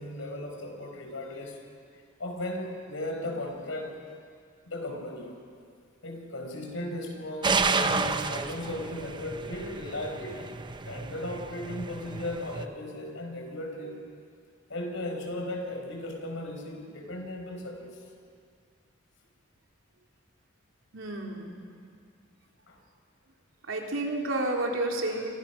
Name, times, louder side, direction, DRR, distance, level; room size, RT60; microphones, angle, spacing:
voice 1, 0.0-1.6 1.9-4.0 4.6-5.3 6.0-10.5 10.8-14.1 14.7-18.0 22.7-22.8, left 1 dB, 75° left, 3 dB, 4.8 m, -36 dB
sound 1, 7.4-12.7, right 4 dB, 25° right, 0.8 m, -31 dB
voice 2, 20.9-21.5 23.7-25.3, right 2 dB, 75° right, 0 dB, 3.5 m, -30 dB
28.0 x 25.0 x 5.9 m, 2.2 s
head